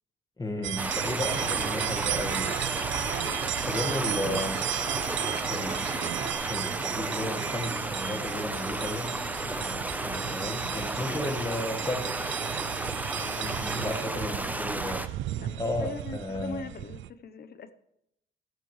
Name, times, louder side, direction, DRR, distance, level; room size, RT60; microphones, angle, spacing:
voice 1, 0.4-2.6 3.7-4.7 5.5-6.0 6.4-9.2 9.5-12.3 13.2-15.1 15.6-16.7, left 1 dB, 20° left, 1.8 m, -34 dB
sound 1, 0.6-17.1, right 13 dB, 75° right, 0.5 m, -35 dB
sound 2, 0.8-15.1, right 1 dB, 10° right, 0.9 m, -33 dB
sound 3, 1.3-6.3, right 7 dB, 55° right, 1.0 m, -38 dB
voice 2, 13.2-13.5 14.3-14.6 15.4-17.7, left 6 dB, 50° left, 1.0 m, -42 dB
14.5 x 13.5 x 3.3 m
cardioid pair, 90°, 20 cm